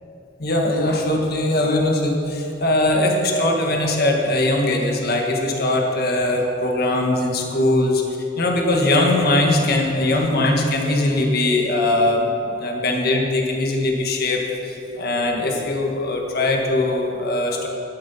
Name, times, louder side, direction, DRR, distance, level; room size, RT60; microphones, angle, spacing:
voice 1, 0.4-8.0 8.4-12.3 12.6-17.7, left 1 dB, 50° left, 1 dB, 1.7 m, -20 dB
12.0 x 11.5 x 5.7 m, 2.9 s
head